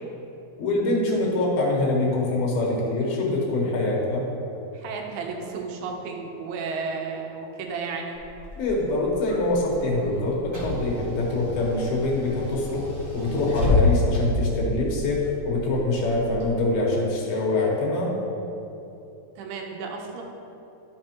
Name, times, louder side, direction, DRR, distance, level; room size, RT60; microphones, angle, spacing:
voice 1, 0.6-4.3 8.5-12.9 13.1-18.1, left 2 dB, 80° left, -3 dB, 3.1 m, -24 dB
voice 2, 4.7-8.2 19.4-20.2, right 4 dB, 85° right, 1 dB, 2.7 m, -33 dB
Car / Engine, 8.1-16.5, left 2 dB, 45° right, 0.6 m, -29 dB
11.5 x 6.0 x 2.9 m, 2.9 s
omnidirectional pair, 4.4 m